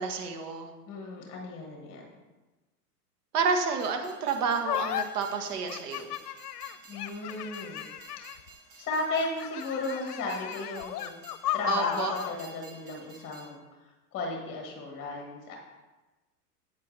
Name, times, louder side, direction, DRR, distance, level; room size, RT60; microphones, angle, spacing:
voice 1, 0.0-0.7 3.3-6.1 11.7-12.1, right 5 dB, 70° right, 4 dB, 1.6 m, -29 dB
voice 2, 0.9-2.1 6.9-7.9 8.8-11.2 11.5-15.6, left 2 dB, 25° left, 1 dB, 1.6 m, -35 dB
Train, 3.7-13.5, right 3 dB, 45° right, 2.4 m, -53 dB
sound 1, 4.6-5.0 5.7-8.5 9.1-12.4, left 12 dB, 75° left, 0.7 m, -35 dB
9.4 x 8.4 x 3.3 m, 1.1 s
hypercardioid pair, 125°, 48 cm